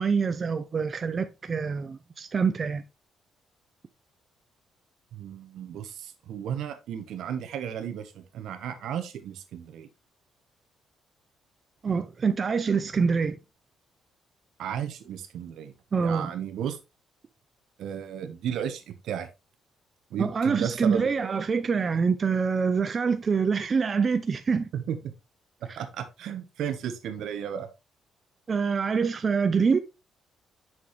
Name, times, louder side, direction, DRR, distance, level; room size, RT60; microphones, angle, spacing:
voice 1, 0.0-2.8 11.8-13.4 15.9-16.3 20.2-24.7 28.5-29.8, right 5 dB, 40° right, 0.5 m, -25 dB
voice 2, 5.1-9.9 14.6-15.7 16.0-16.8 17.8-19.3 20.1-21.1 24.7-25.1 25.6-27.7, right 9 dB, 80° right, 1.0 m, -34 dB
6.1 x 6.0 x 3.1 m
cardioid pair, 90°, 0 cm